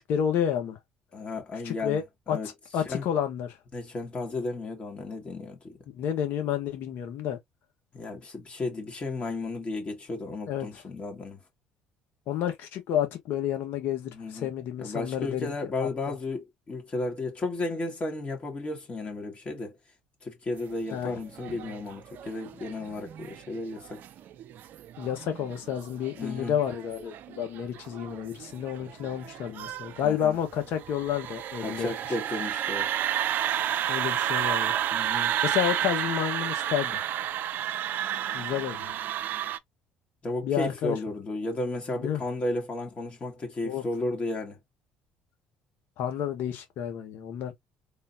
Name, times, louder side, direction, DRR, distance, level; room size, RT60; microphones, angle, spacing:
voice 1, 0.1-0.8 1.6-2.4 2.7-3.6 5.9-7.4 10.5-10.8 12.3-15.5 15.8-16.1 20.9-21.2 25.0-31.9 33.9-34.7 35.4-37.0 38.3-38.9 40.4-41.0 42.0-42.2 43.6-43.8 46.0-47.5, left 9 dB, 65° left, 1.3 m, -30 dB
voice 2, 1.1-2.0 2.3-2.5 2.8-3.1 3.7-5.8 7.9-11.4 14.1-14.5 14.8-19.8 20.2-24.0 26.2-26.6 30.0-30.4 31.6-32.9 34.9-35.4 40.2-44.6, left 2 dB, 35° left, 2.0 m, -33 dB
sound 1, 20.7-39.6, right 11 dB, 60° right, 0.5 m, -32 dB
3.7 x 2.7 x 2.7 m
hypercardioid pair, 65°, 4 cm